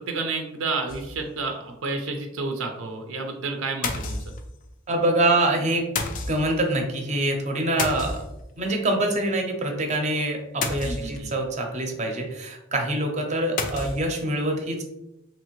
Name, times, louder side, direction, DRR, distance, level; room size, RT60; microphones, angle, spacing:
voice 1, 0.0-4.2 10.8-11.3, right 3 dB, 90° right, 3 dB, 0.4 m, -30 dB
sound 1, 0.9-1.4 1.8-1.9 2.2-2.3 3.8-4.7 6.0-6.6 7.8-8.7 10.6-11.4 13.6-14.1, left 3 dB, 40° left, 0.4 m, -30 dB
voice 2, 4.9-5.8 6.3-8.2 8.6-14.8, right 1 dB, 35° right, 2 dB, 0.5 m, -25 dB
3.0 x 2.6 x 2.9 m, 0.90 s
head